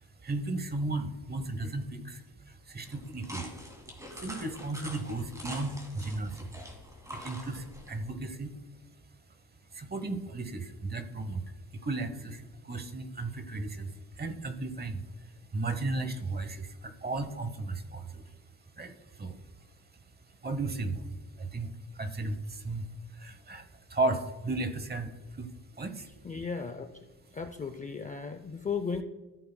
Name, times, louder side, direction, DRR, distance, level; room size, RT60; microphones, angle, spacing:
voice 1, 0.0-3.7 4.1-6.6 7.1-8.6 9.7-18.3 18.7-19.4 20.3-26.1, right 2 dB, 25° right, 9 dB, 0.9 m, -35 dB
sound 1, 2.9-8.0, equal, 10° right, 2.2 m, -45 dB
voice 2, 26.2-27.1 27.3-29.0, left 5 dB, 20° left, 7 dB, 0.4 m, -35 dB
14.5 x 8.5 x 2.2 m, 1.3 s
cardioid pair, 135°, 40 cm